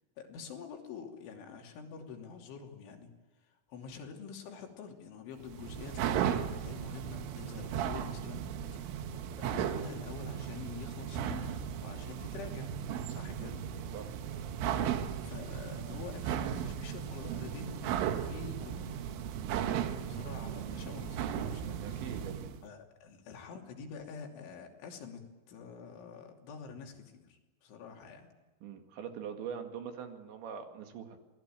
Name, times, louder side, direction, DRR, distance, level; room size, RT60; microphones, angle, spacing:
voice 1, 0.2-3.1 3.4-8.4 8.7-9.1 9.4-12.8 13.1-13.6 15.2-19.0 20.1-22.2 22.6-28.3, left 6 dB, 70° left, 2 dB, 5.2 m, -47 dB
sound 1, 5.4-22.6, right 9 dB, 85° right, 3.9 m, -36 dB
voice 2, 19.5-19.9 21.8-22.6 28.6-31.2, right 8 dB, 65° right, 5 dB, 4.2 m, -43 dB
27.5 x 19.5 x 9.0 m, 1.2 s
omnidirectional pair, 5.7 m